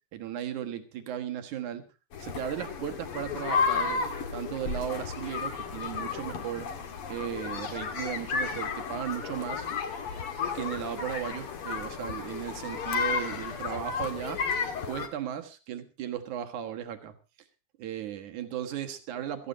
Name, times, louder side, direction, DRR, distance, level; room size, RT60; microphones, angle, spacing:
voice 1, 0.1-1.8 2.2-6.7 7.1-9.7 10.5-14.4 14.9-17.1 17.8-19.5, right 10 dB, 60° right, 7 dB, 2.2 m, -36 dB
sound 1, 2.1-15.1, left 5 dB, 55° left, 1.6 m, -33 dB
17.0 x 14.5 x 4.1 m, 0.31 s
omnidirectional pair, 5.1 m